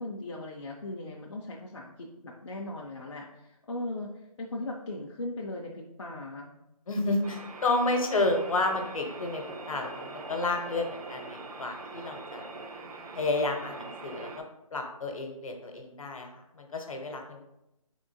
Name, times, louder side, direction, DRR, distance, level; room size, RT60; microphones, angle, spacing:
voice 1, 0.0-4.1 4.4-6.5, left 2 dB, 50° left, -2 dB, 0.4 m, -38 dB
voice 2, 6.9-12.4 13.1-14.4 14.7-17.4, left 2 dB, 65° left, 4 dB, 0.8 m, -31 dB
sound 1, 7.2-14.4, right 3 dB, 70° right, 0.7 m, -42 dB
3.7 x 3.5 x 2.6 m, 0.88 s
hypercardioid pair, 175°, 19 cm